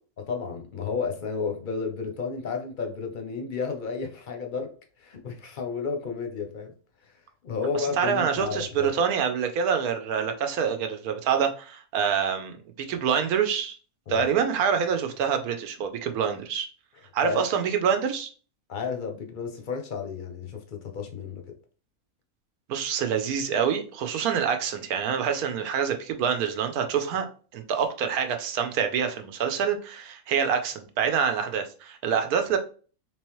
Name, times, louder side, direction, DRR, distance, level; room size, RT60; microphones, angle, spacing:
voice 1, 0.2-4.7 5.0-6.7 7.4-8.9 14.1-14.3 17.2-17.4 18.7-21.4, left 5 dB, 50° left, 0.6 m, -32 dB
voice 2, 7.8-13.8 14.1-16.7 17.1-18.3 22.7-27.3 27.5-32.6, right 7 dB, 90° right, 1.2 m, -26 dB
3.8 x 3.1 x 3.0 m
omnidirectional pair, 1.5 m